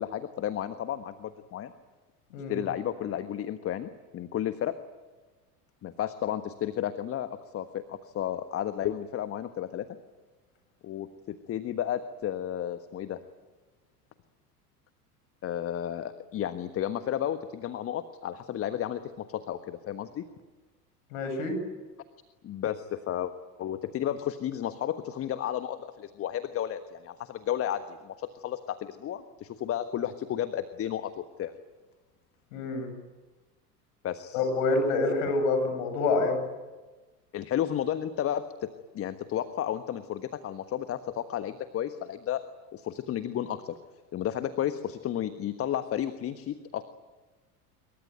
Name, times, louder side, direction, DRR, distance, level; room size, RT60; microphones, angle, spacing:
voice 1, 0.0-1.7 2.5-4.7 5.8-9.9 10.8-13.2 15.4-20.3 22.4-23.3 23.6-31.5 34.0-34.5 35.2-35.3 37.3-42.4 42.7-43.7 44.1-46.8, left 10 dB, 30° left, 11 dB, 1.4 m, -32 dB
voice 2, 21.1-21.5 32.5-32.9 34.3-36.4, left 3 dB, 55° left, 6 dB, 7.9 m, -27 dB
27.0 x 23.0 x 9.3 m, 1.2 s
figure-of-eight pair, 75°, 47 cm